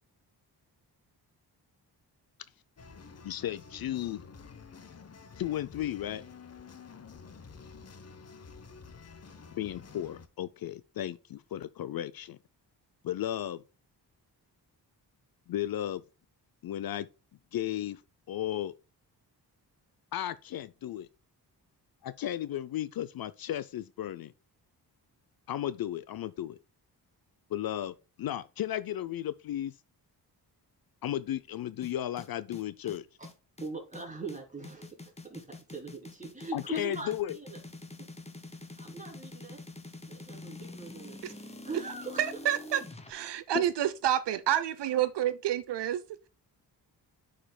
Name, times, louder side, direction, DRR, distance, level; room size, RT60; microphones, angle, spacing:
sound 1, 2.8-10.3, left 5 dB, 40° left, 0.9 m, -50 dB
voice 1, 3.2-4.2 5.4-6.2 9.6-12.4 13.0-13.6 15.5-16.0 16.6-17.1 17.5-18.0 18.3-18.7 20.1-21.1 22.0-24.3 25.5-26.6 27.5-29.8 31.0-33.1 36.5-37.3 43.5-43.7, left 12 dB, 60° left, 0.5 m, -34 dB
sound 2, 31.8-43.1, left 2 dB, 15° left, 1.2 m, -46 dB
voice 2, 33.6-35.0 35.2-37.6 38.8-39.6 40.1-42.2, right 4 dB, 20° right, 3.1 m, -42 dB
voice 3, 42.2-42.8 43.1-46.0, right 11 dB, 80° right, 0.7 m, -29 dB
10.0 x 5.1 x 2.2 m
cardioid pair, 75°, 41 cm